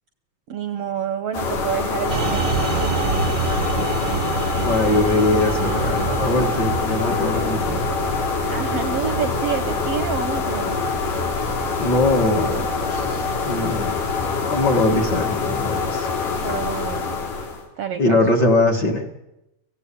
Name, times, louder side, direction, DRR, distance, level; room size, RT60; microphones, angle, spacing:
voice 1, 0.5-3.7 8.5-10.7 16.4-17.2 17.8-18.2, right 8 dB, 65° right, 10 dB, 1.7 m, -28 dB
sound 1, 1.3-17.6, left 5 dB, 85° left, 4.6 m, -25 dB
sound 2, 2.1-14.7, right 5 dB, 35° right, 1.3 m, -28 dB
voice 2, 4.6-7.9 11.8-14.0 14.5-16.1 18.0-19.0, left 2 dB, 35° left, 2 dB, 2.3 m, -21 dB
25.5 x 16.5 x 8.6 m, 0.91 s
omnidirectional pair, 3.6 m